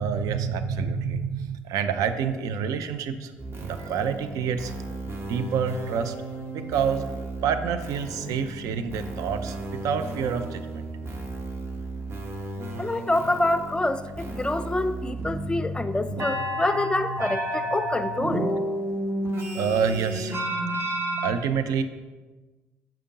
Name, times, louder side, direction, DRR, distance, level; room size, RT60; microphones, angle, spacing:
voice 1, 0.0-3.3 3.6-4.7 5.3-6.1 6.5-7.0 7.4-9.6 9.8-10.9 19.5-20.4 21.2-21.8, right 7 dB, 60° right, 9 dB, 0.5 m, -27 dB
sound 1, 3.4-21.3, right 1 dB, 40° right, 1.1 m, -32 dB
voice 2, 12.8-18.5, left 2 dB, 15° left, 11 dB, 0.4 m, -26 dB
7.4 x 5.0 x 2.8 m, 1.2 s
hypercardioid pair, 50°, 7 cm